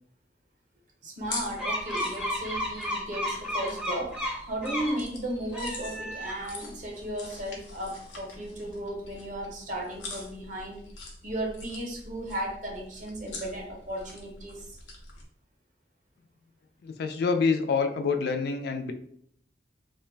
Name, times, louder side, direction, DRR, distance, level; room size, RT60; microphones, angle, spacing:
voice 1, 1.0-4.2 4.5-10.8 11.2-14.8, right 1 dB, 45° right, 0 dB, 0.7 m, -35 dB
sound 1, 1.2-15.3, left 3 dB, 85° left, 0.6 m, -44 dB
sound 2, 1.6-5.0 5.4-6.7, equal, 5° right, 0.5 m, -33 dB
voice 2, 16.8-18.9, left 5 dB, 60° left, 6 dB, 0.3 m, -27 dB
2.4 x 2.1 x 3.2 m, 0.65 s
head